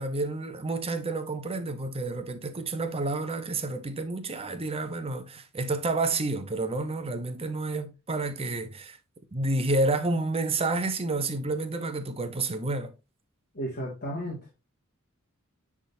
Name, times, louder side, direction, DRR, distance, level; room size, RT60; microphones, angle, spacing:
voice 1, 0.0-9.0 9.3-12.9, right 2 dB, 25° right, 0.8 m, -30 dB
voice 2, 13.5-14.5, equal, 45° left, 1.9 m, -34 dB
10.5 x 3.7 x 2.6 m
head